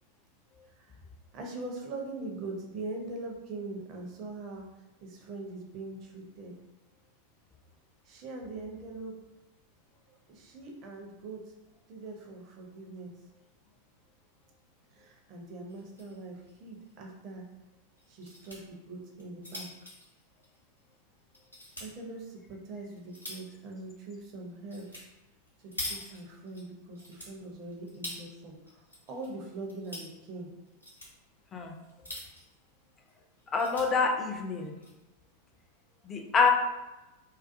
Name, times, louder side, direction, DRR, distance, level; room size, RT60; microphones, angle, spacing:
voice 1, 1.3-4.7 5.0-6.5 8.1-9.1 10.1-11.4 11.9-13.1 14.9-17.4 18.1-19.7 21.8-25.1 25.6-28.8 29.1-30.5, right 2 dB, 35° right, 0 dB, 0.5 m, -42 dB
sound 1, 15.7-16.2 16.5-16.6 16.9-17.0 18.0-18.6 19.1-20.9 21.3-21.9 22.5-23.6 24.7-25.0 25.3-26.6 26.9-28.2 28.7-29.3 29.6-30.1 30.6-31.1 31.8-32.5 33.0-33.1 33.4-33.9 34.6-34.9, left 1 dB, 90° left, 0.7 m, -43 dB
voice 2, 33.5-34.7 36.1-36.5, left 5 dB, 20° left, 2 dB, 0.4 m, -26 dB
2.3 x 2.3 x 2.5 m, 1.0 s
figure-of-eight pair, 90°, 0 cm